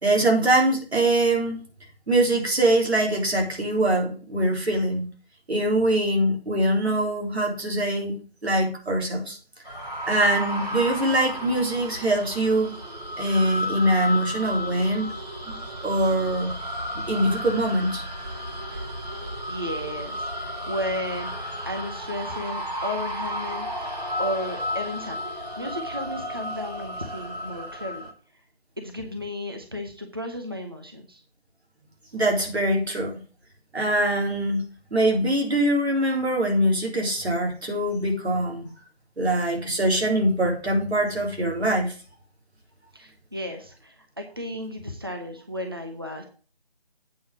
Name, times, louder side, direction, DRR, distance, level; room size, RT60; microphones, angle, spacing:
voice 1, 0.0-1.6 2.1-5.1 5.5-9.4 10.1-12.7 13.2-15.1 15.4-16.5 17.1-18.0 32.1-33.2 33.7-34.6 34.9-38.6 39.2-41.9, right 1 dB, 90° right, 1 dB, 3.8 m, -23 dB
sound 1, 9.7-28.1, equal, 40° right, 2.5 m, -33 dB
voice 2, 19.5-23.8 24.2-28.1 28.8-31.2 42.9-46.2, left 1 dB, 25° right, 4 dB, 0.7 m, -34 dB
8.4 x 4.8 x 7.3 m, 0.39 s
figure-of-eight pair, 175°, 31 cm